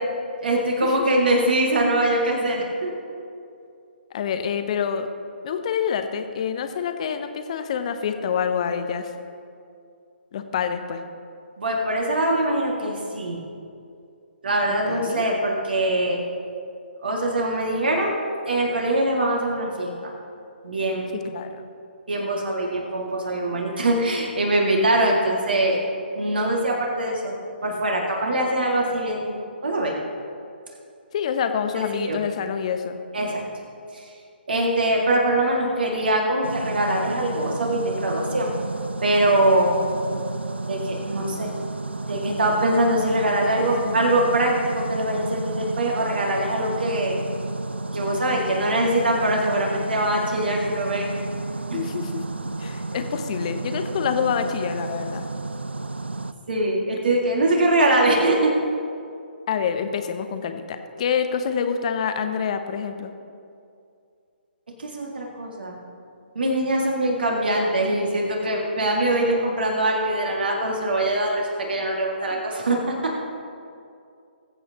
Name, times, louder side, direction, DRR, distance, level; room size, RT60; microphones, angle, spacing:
voice 1, 0.4-2.9 11.6-13.4 14.4-16.2 17.0-18.2 18.5-20.1 20.6-21.2 22.1-25.8 26.1-27.3 27.6-29.4 29.6-29.9 31.7-32.2 33.1-33.4 33.9-34.1 34.5-38.5 39.0-39.8 40.7-41.5 42.0-47.2 47.9-51.1 51.7-51.8 56.5-58.5 64.8-65.7 66.4-73.1, right 1 dB, 60° right, -1 dB, 2.1 m, -23 dB
voice 2, 4.1-5.1 5.4-9.1 10.3-11.0 14.9-15.2 21.1-21.7 31.1-33.0 43.6-43.9 51.7-52.1 52.6-55.3 59.5-63.1 72.3-72.4, left 7 dB, 35° left, 8 dB, 0.8 m, -27 dB
sound 1, 36.4-56.3, right 2 dB, 75° right, 0.5 m, -32 dB
20.5 x 8.3 x 2.9 m, 2.5 s
figure-of-eight pair, 135°, 6 cm